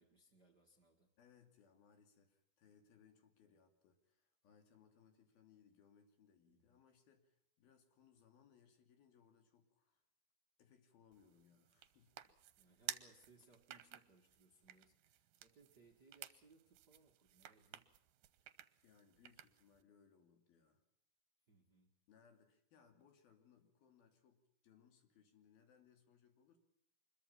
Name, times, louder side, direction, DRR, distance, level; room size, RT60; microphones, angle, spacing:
voice 1, 0.0-1.1 6.5-6.8 12.2-17.9 21.5-22.0, right 3 dB, 40° right, 4 dB, 1.6 m, -69 dB
voice 2, 1.2-10.0 10.6-12.2 18.8-20.8 22.1-26.6, left 7 dB, 75° left, 6 dB, 4.6 m, -69 dB
sound 1, 11.1-19.8, right 12 dB, 75° right, 2.6 m, -54 dB
25.0 x 22.0 x 5.9 m, 0.74 s
omnidirectional pair, 4.4 m